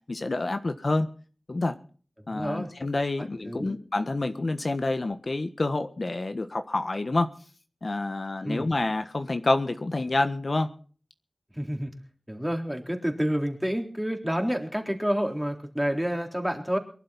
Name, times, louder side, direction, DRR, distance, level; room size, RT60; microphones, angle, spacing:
voice 1, 0.1-1.1 1.5-1.7 2.3-7.3 7.8-10.7, left 2 dB, 65° left, 8 dB, 1.4 m, -28 dB
voice 2, 2.3-2.7 3.4-3.8 8.4-8.7 11.5-11.9 12.3-16.8, equal, 5° right, 3 dB, 3.9 m, -29 dB
23.0 x 12.0 x 4.2 m, 0.42 s
wide cardioid pair, 50°, 0 cm